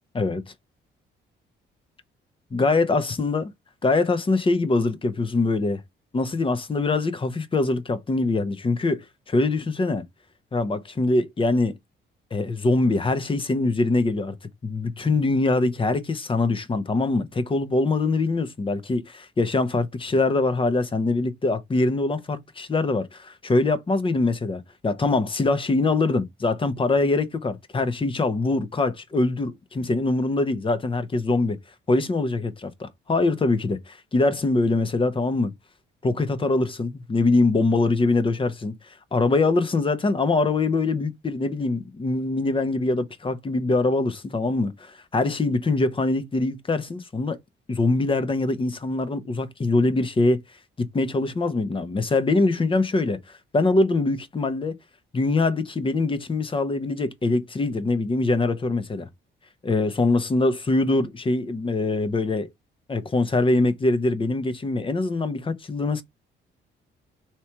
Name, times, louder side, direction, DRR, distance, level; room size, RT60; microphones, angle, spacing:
voice 1, 2.5-3.5 3.8-5.8 6.1-10.0 10.5-11.7 12.3-14.4 14.6-31.6 31.9-35.5 36.0-38.7 39.1-47.4 47.7-50.4 50.9-54.8 55.1-59.1 59.6-62.5 62.9-66.0, left 3 dB, 25° left, 0.8 m, -23 dB
3.2 x 2.9 x 4.6 m
cardioid pair, 90°, 20 cm